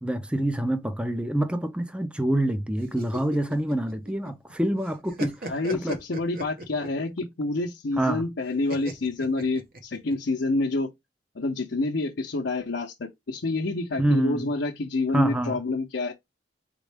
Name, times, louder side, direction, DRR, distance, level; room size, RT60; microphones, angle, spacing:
voice 1, 0.0-6.0 8.0-8.2 14.0-14.5 15.1-15.6, right 1 dB, 5° right, 0.5 m, -26 dB
sound 1, 2.8-4.5 4.8-7.0 8.7-10.1, right 1 dB, 55° right, 1.1 m, -37 dB
voice 2, 5.5-10.9 11.3-16.1, left 2 dB, 90° left, 0.7 m, -28 dB
4.1 x 3.7 x 3.4 m
head